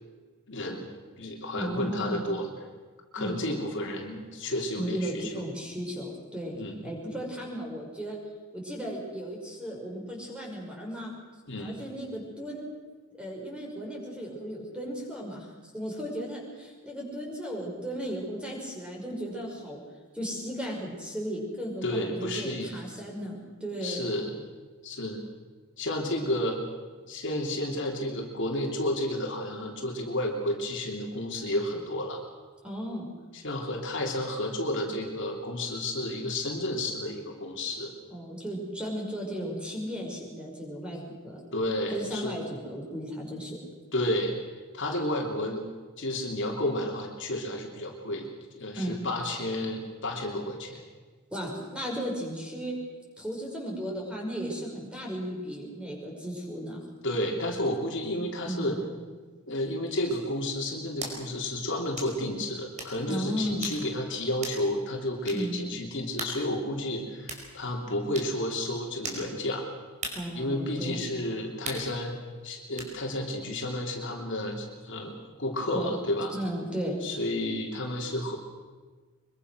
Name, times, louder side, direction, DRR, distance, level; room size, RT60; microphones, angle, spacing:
voice 1, 0.5-0.9 1.2-2.5 3.1-5.4 6.5-6.9 11.5-11.8 21.8-22.7 23.8-24.4 24.8-25.2 25.8-26.6 27.1-32.2 33.3-37.9 41.5-42.4 43.9-44.3 44.7-45.6 46.0-48.3 48.5-50.8 57.0-58.8 59.5-69.7 70.3-72.1 72.4-76.3 77.0-78.4, left 1 dB, 55° left, 1 dB, 3.3 m, -31 dB
voice 2, 1.5-2.2 3.2-3.5 4.8-6.5 6.8-8.2 8.5-11.1 11.6-12.7 13.1-15.5 15.7-19.8 20.1-24.1 32.6-33.1 38.1-41.4 41.9-43.6 48.8-49.0 51.3-52.8 53.2-56.8 58.5-58.8 63.1-63.6 65.3-65.6 70.1-71.0 75.7-75.9 76.3-77.0, equal, 5° right, -1 dB, 5.8 m, -35 dB
sound 1, 60.1-60.3 61.0-61.2 62.0-62.1 62.8-63.0 63.6-63.8 64.4-64.6 65.3-65.4 66.2-66.4 67.3-67.5 68.1-68.3 69.0-69.3 70.0-70.2 71.6-71.9 72.8-72.9, right 2 dB, 35° right, 4.8 m, -37 dB
24.0 x 23.0 x 6.3 m, 1.4 s
head